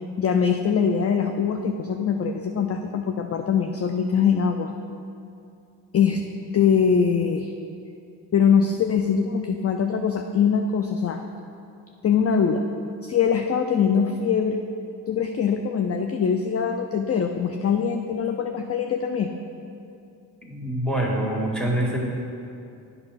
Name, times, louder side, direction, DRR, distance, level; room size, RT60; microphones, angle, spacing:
voice 1, 0.2-4.7 5.9-7.5 8.3-11.2 12.0-12.7 13.0-14.6 15.1-19.3, left 6 dB, 35° left, 5 dB, 0.5 m, -22 dB
voice 2, 20.4-22.0, right 1 dB, ahead, -2 dB, 1.8 m, -25 dB
8.6 x 5.6 x 4.1 m, 2.6 s
hypercardioid pair, 45°, 44 cm